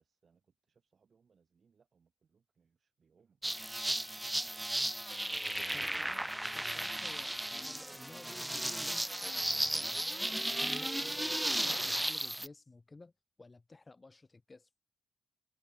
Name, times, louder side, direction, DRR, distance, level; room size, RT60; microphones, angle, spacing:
voice 1, 0.0-5.0 5.7-6.2, right 6 dB, 40° right, 7.0 m, -72 dB
sound 1, 3.4-12.5, right 1 dB, 5° right, 0.3 m, -35 dB
voice 2, 5.7-10.1 10.5-13.1 13.4-14.7, left 3 dB, 20° left, 0.6 m, -54 dB
cardioid pair, 90°, 0 cm